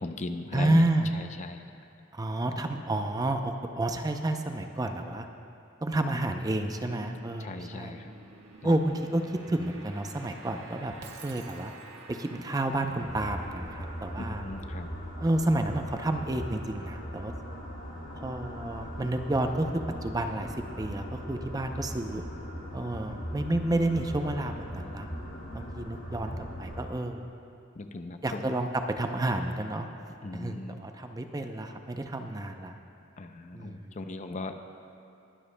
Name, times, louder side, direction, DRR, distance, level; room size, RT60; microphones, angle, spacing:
voice 1, 0.0-0.8 1.1-1.6 7.4-8.1 8.6-8.7 14.3-14.9 27.8-28.4 30.2-30.8 33.2-34.6, left 2 dB, 35° left, 7 dB, 0.5 m, -38 dB
voice 2, 0.5-1.1 2.1-5.3 5.8-8.0 8.6-11.7 12.1-14.4 15.2-17.3 18.1-19.7 20.0-22.3 22.7-25.1 25.5-27.3 28.2-29.9 30.3-32.8 33.5-34.0, right 1 dB, 20° right, 6 dB, 0.5 m, -30 dB
sound 1, 5.9-17.1, right 2 dB, 85° right, 1.4 m, -51 dB
Shatter, 11.0-12.2, right 6 dB, 55° right, 0.8 m, -50 dB
sound 2, 13.0-26.9, equal, 70° left, 2.1 m, -39 dB
21.5 x 12.0 x 2.2 m, 2.7 s
head